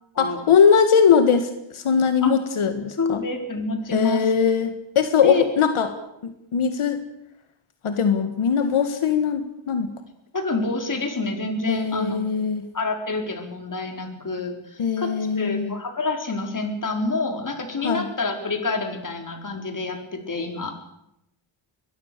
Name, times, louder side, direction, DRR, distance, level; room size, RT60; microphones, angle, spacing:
voice 1, 0.2-3.2 3.9-5.9 6.2-7.0 7.8-9.9 11.7-12.6 14.8-15.7 17.8-18.1, left 6 dB, 85° left, 8 dB, 1.9 m, -20 dB
voice 2, 3.0-4.3 5.2-5.4 10.3-12.2 12.7-20.8, left 3 dB, 40° left, 5 dB, 4.2 m, -27 dB
23.0 x 20.5 x 6.8 m, 0.81 s
wide cardioid pair, 110°, 48 cm